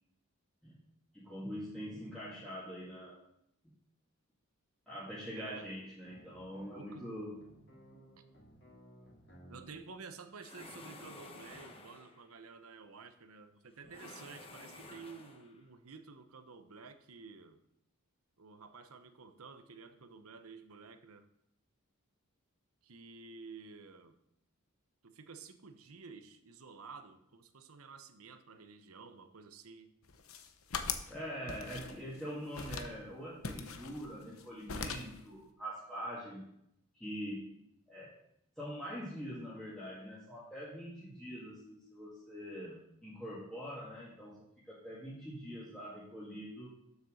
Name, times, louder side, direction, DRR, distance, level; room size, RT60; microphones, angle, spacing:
voice 1, 1.1-3.2 4.9-7.4 31.1-36.5 36.9-37.5 37.9-38.2 38.6-46.7, equal, ahead, -9 dB, 2.0 m, -44 dB
voice 2, 5.3-5.7 6.7-7.1 9.5-17.6 18.4-21.3 22.8-24.2 25.0-29.9, right 5 dB, 85° right, 9 dB, 0.9 m, -51 dB
sound 1, 6.0-9.9, equal, 55° left, 3.2 m, -58 dB
sound 2, 10.4-12.3 13.8-15.6, left 2 dB, 25° left, 1.0 m, -52 dB
sound 3, 30.1-31.1 31.5-32.2 32.5-33.0 33.4-34.4 34.7-35.2, left 5 dB, 75° left, 0.8 m, -40 dB
7.2 x 6.8 x 6.5 m, 0.76 s
head